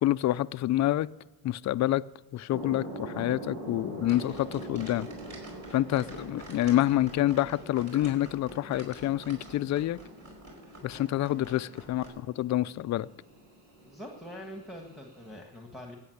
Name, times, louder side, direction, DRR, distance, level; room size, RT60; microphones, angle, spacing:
voice 1, 0.0-1.1 1.4-2.0 2.3-5.1 5.7-10.0 10.8-13.1, left 14 dB, 40° left, 0.4 m, -27 dB
sound 1, 2.5-15.4, right 1 dB, 85° right, 4.5 m, -44 dB
sound 2, 4.0-12.1, right 1 dB, 40° right, 5.1 m, -49 dB
voice 2, 11.2-11.5 13.8-16.0, equal, ahead, 1.6 m, -45 dB
14.5 x 9.1 x 7.9 m
cardioid pair, 110°, 43 cm